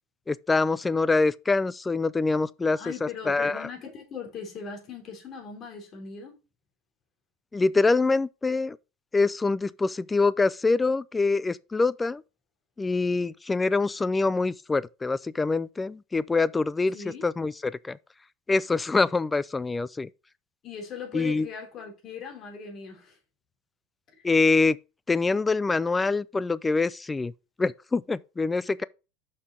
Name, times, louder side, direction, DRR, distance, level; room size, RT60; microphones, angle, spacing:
voice 1, 0.3-3.7 7.5-8.8 9.1-12.2 12.8-17.0 17.2-18.0 18.5-20.1 21.1-21.5 24.2-24.8 25.1-27.3 27.6-28.8, left 3 dB, 10° left, 0.4 m, -25 dB
voice 2, 2.8-6.4 16.9-17.2 20.6-23.2 24.2-24.3, left 6 dB, 40° left, 3.3 m, -39 dB
6.4 x 5.7 x 5.2 m
supercardioid pair, 135°, 0 cm